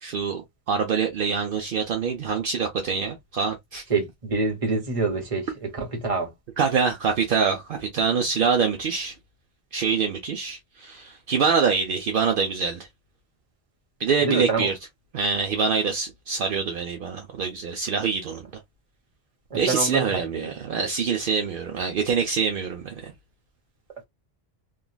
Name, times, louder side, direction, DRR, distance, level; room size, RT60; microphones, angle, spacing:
voice 1, 0.0-3.8 6.6-9.1 9.7-12.9 14.0-14.8 15.1-18.4 19.5-23.1, right 5 dB, 65° right, 0.7 m, -25 dB
voice 2, 3.9-6.3 14.2-14.7 19.5-20.5, right 3 dB, 35° right, 1.0 m, -26 dB
3.0 x 2.4 x 2.2 m
omnidirectional pair, 1.0 m